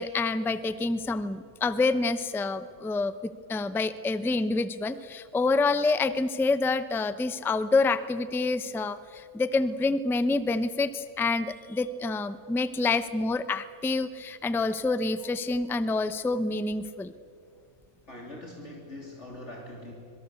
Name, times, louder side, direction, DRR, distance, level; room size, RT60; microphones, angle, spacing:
voice 1, 0.0-17.1, left 3 dB, 5° left, 13 dB, 0.4 m, -27 dB
voice 2, 18.1-19.9, left 1 dB, 50° left, -1 dB, 3.6 m, -42 dB
25.5 x 23.0 x 8.3 m, 2.4 s
omnidirectional pair, 1.5 m